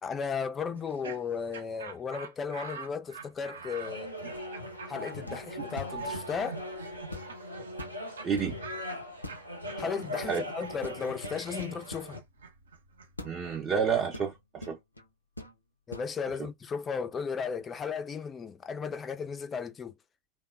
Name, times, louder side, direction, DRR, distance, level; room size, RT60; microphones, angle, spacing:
voice 1, 0.0-4.1 4.9-6.6 9.8-12.2 15.9-19.9, left 6 dB, 20° left, 0.3 m, -35 dB
Laughter, 0.7-7.9 8.2-8.3 8.6-14.3, right 4 dB, 70° right, 0.6 m, -46 dB
sound 1, 3.8-12.2, equal, 90° right, 1.1 m, -40 dB
sound 2, 5.2-5.5 5.8-6.7 7.1-7.4 7.7-8.6 9.2-9.5 9.8-10.4 10.8-12.1 13.2-13.4 14.1-15.1 15.4-15.6 15.9-16.1, left 2 dB, 85° left, 0.5 m, -43 dB
voice 2, 8.2-8.6 10.3-10.4 13.2-14.8, right 6 dB, 25° right, 0.6 m, -29 dB
3.3 x 2.1 x 2.3 m
figure-of-eight pair, 90°, 0 cm